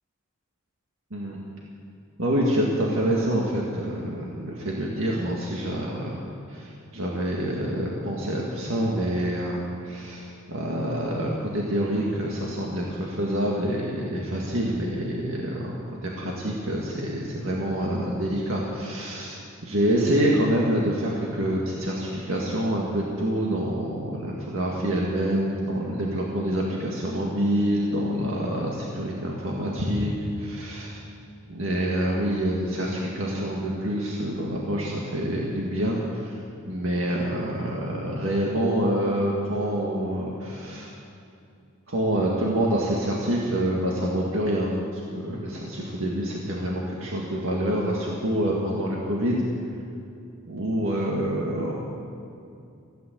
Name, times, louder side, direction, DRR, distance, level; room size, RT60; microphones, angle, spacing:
voice 1, 2.2-6.2 6.5-30.1 30.4-31.0 31.5-36.4 36.7-40.9 41.9-49.4 50.5-51.7, right 1 dB, 80° right, -3 dB, 1.9 m, -27 dB
15.5 x 9.4 x 8.1 m, 2.5 s
head